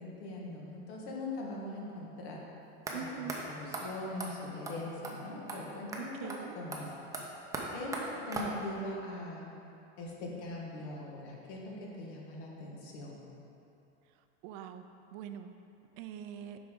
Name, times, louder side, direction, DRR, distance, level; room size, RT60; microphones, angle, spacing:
voice 1, 0.0-2.4 2.9-6.9 7.7-9.5 10.0-13.2, left 2 dB, 70° left, -2 dB, 1.5 m, -41 dB
sound 1, 2.9-3.0 3.3-3.4 3.7-3.8 4.2-4.3 4.6-4.8 5.0-5.1 5.5-5.6 5.9-6.0 6.3-6.4 6.7-8.8, right 2 dB, 10° right, 0.6 m, -39 dB
voice 2, 2.9-3.4 6.0-6.6 14.4-14.8 15.1-15.5 16.0-16.6, right 8 dB, 55° right, 8 dB, 0.4 m, -43 dB
7.7 x 5.3 x 3.6 m, 2.8 s
supercardioid pair, 140°, 33 cm